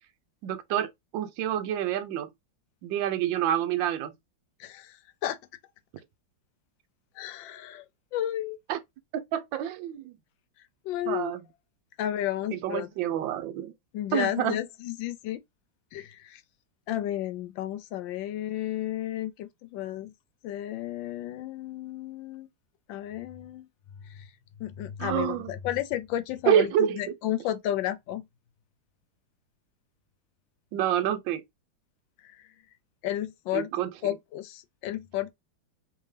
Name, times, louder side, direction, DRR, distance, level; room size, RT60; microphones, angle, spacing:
voice 1, 0.4-2.3 2.8-4.1 8.7-8.8 9.1-10.2 11.1-11.4 12.5-13.7 14.1-14.6 25.0-25.5 26.5-27.1 30.7-31.4 33.5-34.1, right 11 dB, 70° right, 1.3 m, -28 dB
voice 2, 4.6-5.4 7.2-7.9 8.1-8.6 10.8-11.4 12.0-12.9 13.9-15.4 15.9-16.4 16.9-20.1 20.4-22.5 22.9-23.7 24.0-24.3 24.6-28.2 32.2-32.4 33.0-33.7 34.0-35.3, left 12 dB, 75° left, 1.2 m, -32 dB
3.5 x 3.1 x 3.2 m
omnidirectional pair, 2.3 m